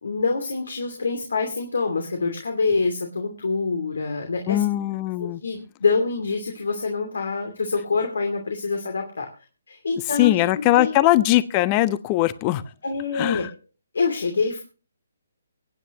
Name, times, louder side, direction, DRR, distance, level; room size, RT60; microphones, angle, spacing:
voice 1, 0.0-4.6 5.2-9.3 9.7-10.3 10.7-10.9 12.8-13.4 13.9-14.6, left 4 dB, 75° left, 4 dB, 2.7 m, -25 dB
voice 2, 4.5-5.4 10.2-12.6 13.1-13.5, left 15 dB, 25° left, 17 dB, 0.7 m, -20 dB
24.0 x 9.4 x 3.0 m, 0.34 s
figure-of-eight pair, 145°, 0 cm